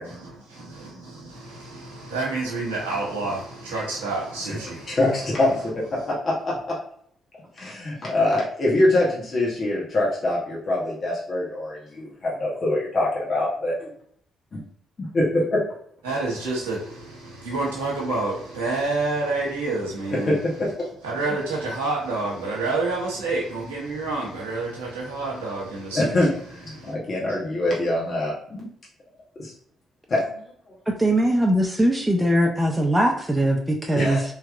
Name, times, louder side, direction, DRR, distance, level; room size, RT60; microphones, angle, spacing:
voice 1, 0.0-5.0 5.9-6.0 16.0-20.4 21.0-26.2 26.7-26.9, right 3 dB, 85° right, 0.8 m, -28 dB
voice 2, 4.9-5.7 6.1-6.7 7.5-13.9 14.5-14.6 15.0-15.6 20.2-20.7 25.9-28.7 29.4-29.5 30.1-30.4 33.9-34.2, left 1 dB, 50° left, 1.1 m, -24 dB
voice 3, 31.0-34.2, right 1 dB, 10° right, 0.6 m, -21 dB
3.4 x 2.9 x 2.4 m
hypercardioid pair, 45°, 0 cm